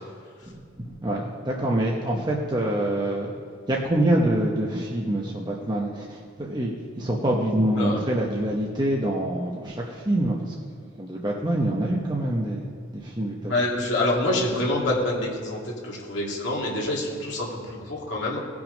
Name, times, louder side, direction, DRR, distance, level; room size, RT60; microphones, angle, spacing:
voice 1, 0.8-3.3 3.7-10.5 11.0-13.6, right 1 dB, 20° right, -2 dB, 0.9 m, -26 dB
voice 2, 7.7-8.1 13.4-18.4, left 1 dB, 60° left, -3 dB, 2.5 m, -26 dB
18.0 x 6.1 x 5.2 m, 2.2 s
head